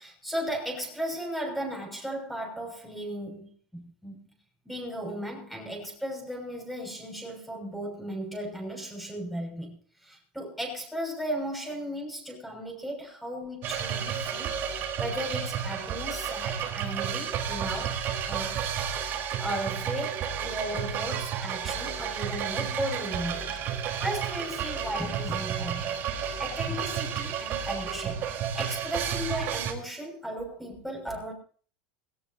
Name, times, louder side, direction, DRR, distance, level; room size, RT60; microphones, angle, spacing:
voice 1, 0.0-4.3 4.6-18.0 18.3-18.6 19.4-31.3, equal, ahead, 0 dB, 6.2 m, -36 dB
sound 1, 13.6-29.7, right 8 dB, 40° right, 3.9 m, -32 dB
19.5 x 18.0 x 2.8 m, 0.43 s
supercardioid pair, 135°, 5 cm